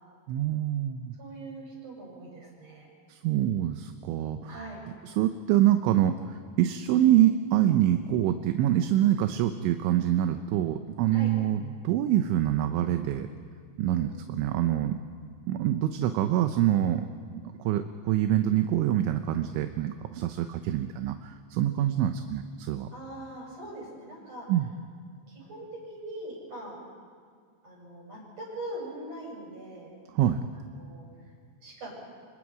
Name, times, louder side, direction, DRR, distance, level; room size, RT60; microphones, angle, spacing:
voice 1, 0.3-1.2 3.1-4.5 5.2-13.3 13.8-15.0 15.5-17.1 17.6-22.9 24.5-24.7 30.1-30.4, right 12 dB, 80° right, 8 dB, 3.1 m, -25 dB
voice 2, 1.2-2.9 4.5-4.8 11.1-11.3 14.0-14.1 22.9-24.5 25.2-26.8 27.6-29.9 30.8-31.3 31.6-31.9, right 1 dB, 30° right, -3 dB, 8.2 m, -42 dB
29.0 x 26.0 x 5.0 m, 2.1 s
omnidirectional pair, 5.6 m